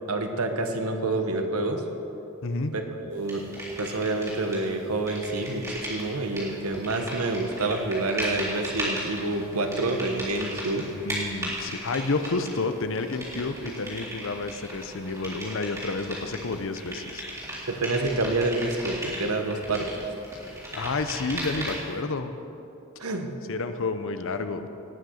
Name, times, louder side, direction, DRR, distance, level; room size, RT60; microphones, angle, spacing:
voice 1, 0.1-1.8 2.7-3.5 3.8-10.8 17.7-19.8 23.0-23.3, right 2 dB, 75° right, 5 dB, 1.3 m, -28 dB
voice 2, 2.4-2.7 11.0-17.2 20.3-22.3 23.5-24.7, left 3 dB, 60° left, 9 dB, 0.8 m, -30 dB
sound 1, 3.3-4.7 4.9-22.0, right 1 dB, 15° right, 3.5 m, -36 dB
19.0 x 6.7 x 6.4 m, 2.8 s
head